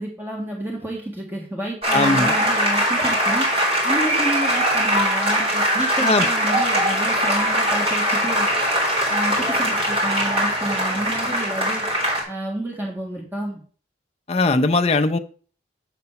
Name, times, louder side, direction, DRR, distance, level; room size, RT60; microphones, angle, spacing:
voice 1, 0.0-3.5 3.8-8.5 9.1-11.9 12.3-13.6, right 1 dB, 10° right, -2 dB, 1.6 m, -30 dB
sound 1, 1.8-12.2, equal, 30° right, 3.0 m, -21 dB
voice 2, 1.9-2.3 6.0-6.3 14.3-15.2, left 2 dB, 35° left, 8 dB, 0.5 m, -19 dB
7.9 x 4.1 x 5.8 m, 0.43 s
head